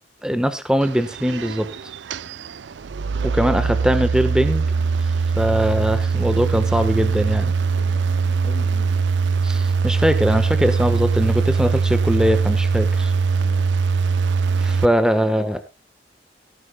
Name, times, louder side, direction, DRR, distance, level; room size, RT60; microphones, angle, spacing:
voice 1, 0.2-1.7 3.2-4.6 5.4-7.5 9.4-13.1 14.6-15.6, equal, 5° right, 9 dB, 1.2 m, -21 dB
sound 1, 0.8-14.8, right 5 dB, 80° right, 0.5 m, -21 dB
voice 2, 7.7-9.0 10.7-10.9 13.3-13.7, left 1 dB, 45° left, -1 dB, 2.4 m, -41 dB
18.0 x 11.0 x 2.2 m, 0.27 s
head